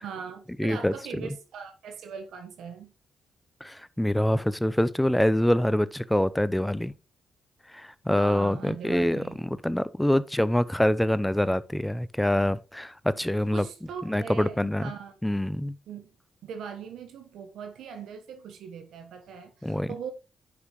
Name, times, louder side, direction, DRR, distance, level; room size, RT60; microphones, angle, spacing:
voice 1, 0.0-2.9 8.2-9.5 13.5-15.2 15.9-16.1 16.4-20.1, right 6 dB, 80° right, 1.1 m, -40 dB
voice 2, 0.6-0.9 3.6-6.9 7.7-13.7 14.0-14.8 15.2-15.7 19.6-19.9, left 1 dB, 5° left, 0.6 m, -25 dB
9.7 x 5.6 x 3.0 m
supercardioid pair, 65°, 0 cm